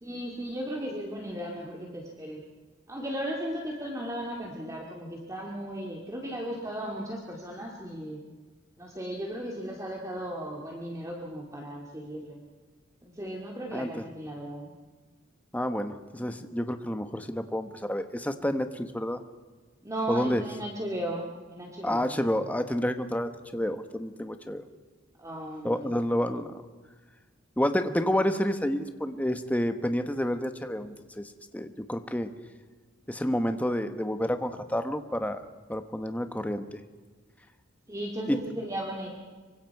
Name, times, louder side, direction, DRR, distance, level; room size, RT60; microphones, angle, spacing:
voice 1, 0.0-2.4 2.9-8.2 8.8-12.4 13.0-14.7 19.8-22.2 25.2-25.9 37.9-39.1, right 1 dB, 15° right, -1 dB, 2.1 m, -36 dB
voice 2, 13.7-14.0 15.5-19.2 20.1-20.4 21.8-24.6 25.6-26.6 27.6-32.3 33.1-35.4 35.7-36.8 38.3-38.4, equal, 10° left, 8 dB, 1.1 m, -29 dB
25.5 x 24.0 x 4.7 m, 1.4 s
head